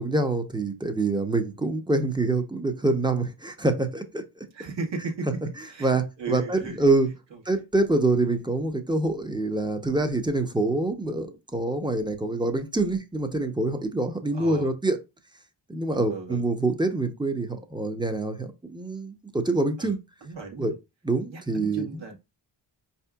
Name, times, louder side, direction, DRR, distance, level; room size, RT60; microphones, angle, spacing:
voice 1, 0.0-4.2 5.8-7.1 7.5-15.0 15.7-20.0 20.6-20.7 21.0-21.9, right 2 dB, 10° right, 0.6 m, -26 dB
voice 2, 4.5-6.9 7.3-7.6 14.3-14.7 15.9-16.5 19.8-19.9 20.2-20.7 21.3-22.2, right 4 dB, 60° right, 1.2 m, -36 dB
4.7 x 2.8 x 2.3 m
cardioid pair, 75°, 49 cm